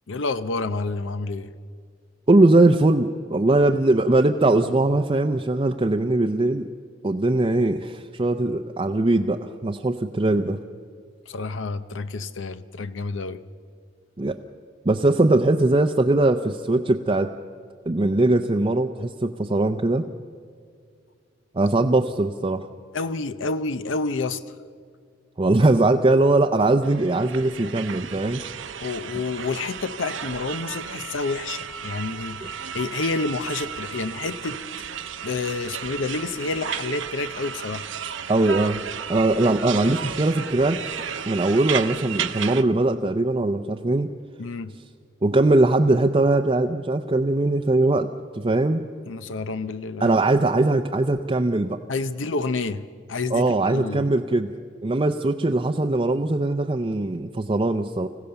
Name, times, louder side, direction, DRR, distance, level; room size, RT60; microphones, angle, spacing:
voice 1, 0.1-1.5 11.3-13.4 22.9-24.6 28.8-34.8 35.2-37.9 44.4-44.7 49.1-50.1 51.9-54.1, left 3 dB, 80° left, 12 dB, 0.7 m, -29 dB
voice 2, 2.3-6.7 7.0-10.6 14.2-14.3 14.8-17.3 17.9-20.0 21.5-22.7 25.4-28.4 38.3-38.8 39.1-40.8 41.3-44.1 45.2-48.8 50.0-51.8 53.3-54.5 54.8-58.1, right 2 dB, 30° right, 4 dB, 0.6 m, -21 dB
sound 1, 26.8-42.6, right 8 dB, 80° right, 0.8 m, -33 dB
26.0 x 16.0 x 6.9 m, 2.1 s
head